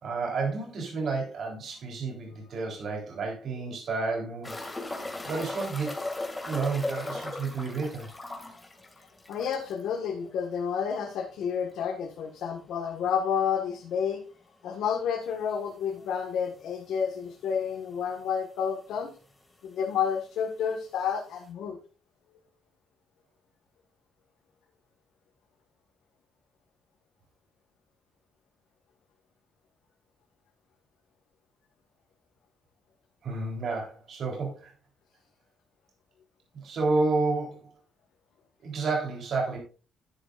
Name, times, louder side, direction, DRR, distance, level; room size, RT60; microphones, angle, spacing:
voice 1, 0.0-4.6 5.2-6.0 6.5-8.1 33.2-34.7 36.5-37.7 38.6-39.6, right 3 dB, 60° right, 1 dB, 3.7 m, -30 dB
sound 1, 4.4-9.8 10.1-10.2 10.6-10.7 13.4-13.5 15.2-15.3 16.1-16.2 16.4-16.5 17.4-17.5 17.7-18.3 19.3-19.4, left 2 dB, 15° left, 2.4 m, -37 dB
voice 2, 9.3-14.2 14.6-19.1 19.6-21.8, left 7 dB, 80° left, 1 dB, 1.7 m, -30 dB
10.5 x 10.5 x 2.6 m, 0.36 s
cardioid pair, 90°, 0 cm